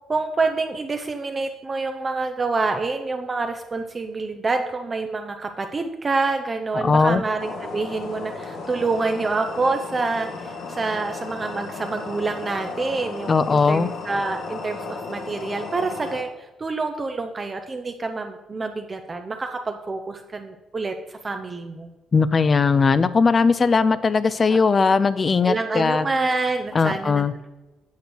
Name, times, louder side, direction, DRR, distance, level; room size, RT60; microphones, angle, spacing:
voice 1, 0.1-16.3 16.6-21.9 25.4-27.2, right 3 dB, 30° right, 6 dB, 0.5 m, -27 dB
voice 2, 6.7-7.2 13.3-13.9 22.1-26.1 26.7-27.3, left 4 dB, 35° left, 15 dB, 0.4 m, -19 dB
sound 1, 7.4-16.2, left 4 dB, 70° left, 1.2 m, -35 dB
8.2 x 3.2 x 6.3 m, 1.1 s
cardioid pair, 90°, 0 cm